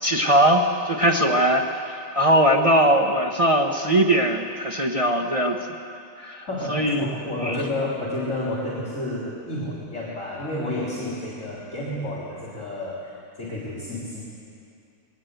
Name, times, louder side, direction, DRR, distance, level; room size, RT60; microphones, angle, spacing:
voice 1, 0.0-5.6 6.2-7.0 7.4-7.6, right 1 dB, 45° right, 1 dB, 0.4 m, -20 dB
voice 2, 6.5-14.2, left 1 dB, 35° left, -6 dB, 3.4 m, -30 dB
20.5 x 18.0 x 8.0 m, 2.5 s
omnidirectional pair, 2.4 m